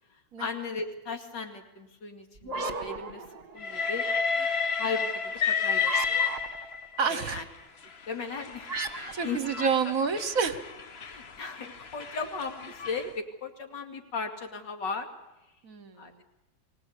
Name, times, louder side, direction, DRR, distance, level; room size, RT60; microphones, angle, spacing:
voice 1, 0.1-3.3 3.5-4.1 4.8-6.2 7.1-7.4 8.1-9.7 11.1-15.1 16.0-16.2, left 4 dB, 70° left, 4 dB, 2.9 m, -37 dB
sound 1, 2.4-3.9 5.8-6.9 8.7-10.5, right 3 dB, 35° right, 1.3 m, -37 dB
Train, 3.6-7.0 7.8-13.1, left 6 dB, 40° left, 1.0 m, -31 dB
voice 2, 7.0-7.4 9.1-10.6 15.6-16.2, right 6 dB, 55° right, 12 dB, 1.3 m, -28 dB
24.0 x 18.0 x 8.3 m, 0.97 s
omnidirectional pair, 2.0 m